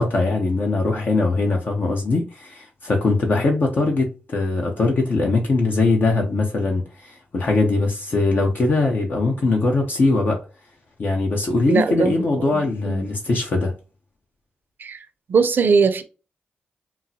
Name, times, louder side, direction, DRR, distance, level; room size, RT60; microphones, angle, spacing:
voice 1, 0.0-10.4 11.0-13.7, left 3 dB, 55° left, 0.7 m, -21 dB
voice 2, 11.7-13.1 14.8-16.0, right 5 dB, 60° right, 0.5 m, -21 dB
3.8 x 2.0 x 2.8 m
supercardioid pair, 45°, 4 cm